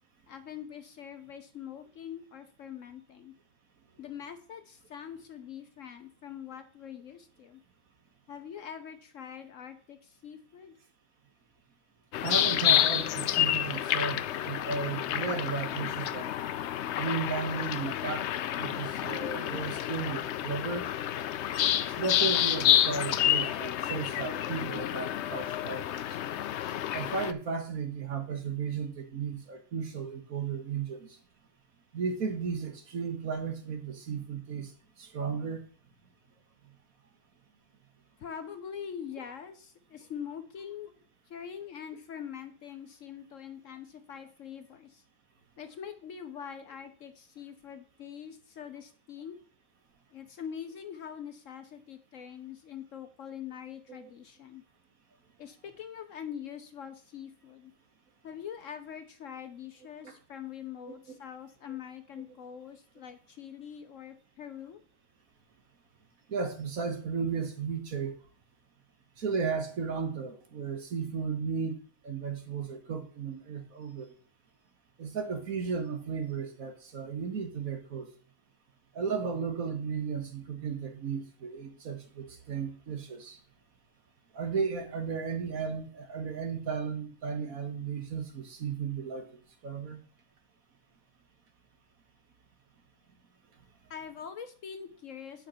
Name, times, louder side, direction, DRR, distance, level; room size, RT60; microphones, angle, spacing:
voice 1, 0.3-3.3 4.0-7.6 8.3-10.8 38.2-41.0 41.3-45.0 45.6-49.4 50.1-54.6 55.4-57.7 58.2-64.8 93.9-95.5, left 8 dB, 60° left, 9 dB, 1.0 m, -43 dB
sound 1, 12.1-27.3, left 11 dB, 75° left, 0.6 m, -29 dB
voice 2, 12.2-16.3 17.0-18.3 18.5-20.9 21.8-26.2 26.9-31.2 31.9-34.7 35.0-35.6 53.9-54.1 60.0-60.1 61.7-61.8 66.3-68.1 69.2-74.1 75.0-78.1 78.9-83.4 84.3-90.0, right 5 dB, 60° right, 6 dB, 1.7 m, -34 dB
9.0 x 5.5 x 5.6 m, 0.43 s
omnidirectional pair, 1.7 m